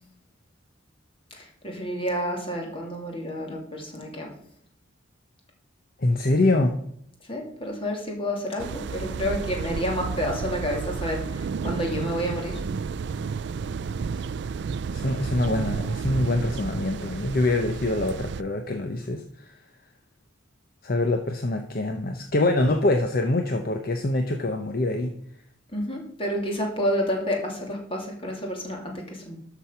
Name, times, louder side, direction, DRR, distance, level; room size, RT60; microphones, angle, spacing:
voice 1, 1.4-4.3 7.3-12.5 25.7-29.4, equal, 25° left, 1 dB, 2.6 m, -29 dB
voice 2, 6.0-6.7 14.9-19.5 20.8-25.1, left 2 dB, 45° left, 6 dB, 0.8 m, -24 dB
sound 1, 8.6-18.4, right 5 dB, 60° right, 0.3 m, -31 dB
12.5 x 6.0 x 5.7 m, 0.69 s
head